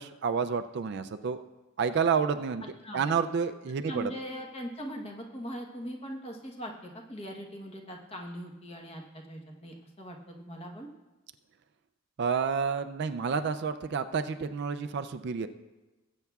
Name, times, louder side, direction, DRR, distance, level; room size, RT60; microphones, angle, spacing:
voice 1, 0.0-1.4 1.8-2.7 2.9-4.1 12.2-15.5, right 6 dB, 50° right, 10 dB, 0.3 m, -29 dB
voice 2, 3.9-10.9, equal, 25° left, 1 dB, 1.0 m, -41 dB
19.0 x 8.2 x 2.3 m, 1.1 s
head